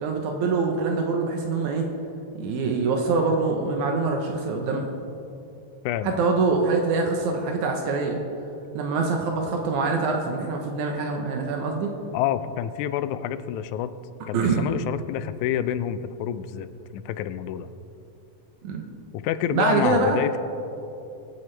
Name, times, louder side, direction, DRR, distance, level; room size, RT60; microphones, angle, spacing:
voice 1, 0.0-1.9 2.4-4.9 6.0-8.2 8.7-11.9 14.3-14.7 18.6-18.8 19.5-20.2, right 4 dB, 80° right, 2 dB, 2.4 m, -24 dB
voice 2, 5.8-6.3 12.1-13.9 14.3-17.7 19.1-20.4, left 10 dB, 85° left, 12 dB, 2.0 m, -28 dB
24.0 x 9.2 x 3.3 m, 2.8 s
omnidirectional pair, 3.4 m